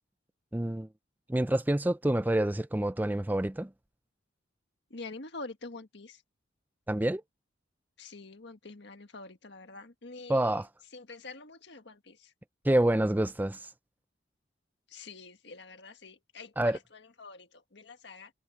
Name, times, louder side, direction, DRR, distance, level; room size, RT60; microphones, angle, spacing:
voice 1, 0.5-0.9 1.3-3.7 6.9-7.2 10.3-10.7 12.6-13.7 16.6-16.8, right 1 dB, 10° right, 0.4 m, -27 dB
voice 2, 4.9-6.2 8.0-10.5 10.9-12.2 14.9-16.7 17.2-17.5 17.7-18.3, left 3 dB, 65° left, 1.7 m, -46 dB
head